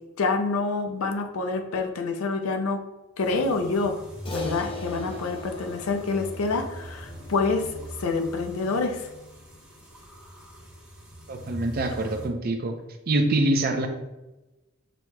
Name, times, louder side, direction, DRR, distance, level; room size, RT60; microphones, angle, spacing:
voice 1, 0.2-2.8 3.2-7.7 8.0-9.1, left 3 dB, 90° left, 6 dB, 0.5 m, -27 dB
sound 1, 3.2-12.3, equal, 5° right, 1.0 m, -42 dB
Crash cymbal, 4.3-8.8, left 3 dB, 25° left, 0.5 m, -40 dB
voice 2, 11.3-12.7 13.1-13.9, right 2 dB, 45° right, 5 dB, 0.5 m, -25 dB
6.2 x 2.9 x 2.2 m, 1.0 s
head